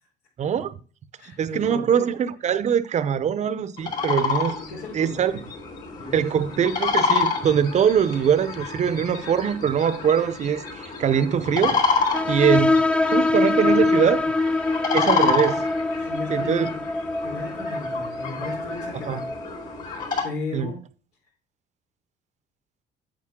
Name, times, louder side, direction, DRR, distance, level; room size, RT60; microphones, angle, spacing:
voice 1, 0.4-0.8 1.2-4.6 4.9-5.3 6.1-11.8 12.3-12.8 13.1-14.3 14.9-15.7 16.3-16.7 19.1-19.2 20.5-20.7, right 8 dB, 45° right, 0.7 m, -22 dB
voice 2, 1.2-2.1 4.4-5.4 6.0-6.4 8.8-8.9 16.0-16.9 17.2-19.3 20.2-20.8, left 3 dB, 90° left, 4.1 m, -36 dB
sound 1, 3.8-20.2, left 5 dB, 55° left, 4.2 m, -29 dB
sound 2, 12.1-19.4, left 2 dB, 5° left, 0.3 m, -24 dB
8.7 x 8.1 x 3.7 m
cardioid pair, 110°, 17 cm